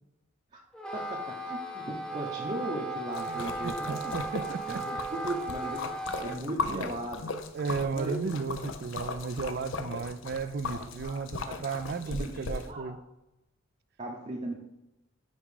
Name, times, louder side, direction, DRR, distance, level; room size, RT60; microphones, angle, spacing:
Wind instrument woodwind instrument, 0.7-6.4, right 2 dB, 5° left, 0.6 m, -36 dB
voice 1, 0.9-4.2 4.7-5.9 6.2-7.3 7.9-8.3 10.9-11.2 11.4-12.9 14.0-14.5, right 1 dB, 35° right, 0.8 m, -38 dB
Splash splatter, 3.1-12.7, left 4 dB, 70° left, 0.6 m, -38 dB
voice 2, 3.3-5.0 6.7-6.9 7.5-13.0, right 5 dB, 50° right, 0.4 m, -34 dB
5.2 x 5.0 x 4.9 m
head